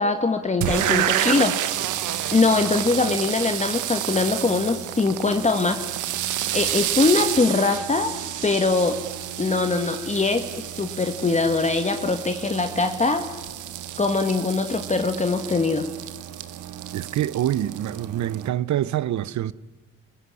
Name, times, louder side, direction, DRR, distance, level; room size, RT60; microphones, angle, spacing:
voice 1, 0.0-1.7 2.3-5.8 6.5-8.1 8.4-9.0 9.4-10.5 10.8-13.2 14.0-15.9, left 3 dB, 25° left, 1.7 m, -22 dB
Poo Stream, 0.6-18.5, right 11 dB, 85° right, 1.5 m, -29 dB
voice 2, 16.9-19.5, right 12 dB, 70° right, 0.9 m, -25 dB
29.5 x 15.5 x 10.0 m
cardioid pair, 90°, 30 cm